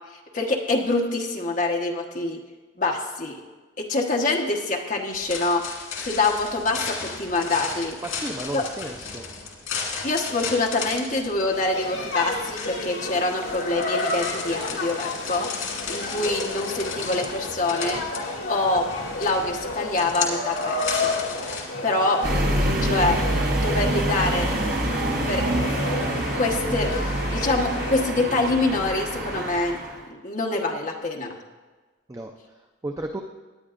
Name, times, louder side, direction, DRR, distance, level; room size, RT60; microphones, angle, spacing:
voice 1, 0.3-2.4 2.8-3.4 3.8-5.6 6.0-8.0 8.5-8.7 10.0-18.0 18.5-21.2 21.8-22.2 22.8-23.2 23.5-24.5 25.3-25.5 26.3-29.8 30.1-31.3, left 2 dB, 40° left, -1 dB, 1.2 m, -25 dB
sound 1, 5.1-21.6, left 5 dB, 85° left, 2.2 m, -35 dB
voice 2, 8.0-9.2 32.1-32.3 32.8-33.2, right 1 dB, 15° right, 3 dB, 0.5 m, -33 dB
sound 2, 11.5-28.1, left 2 dB, 65° left, 2.0 m, -32 dB
sound 3, 22.2-30.0, right 1 dB, 45° right, 1.2 m, -26 dB
18.0 x 10.0 x 2.5 m, 1.3 s
head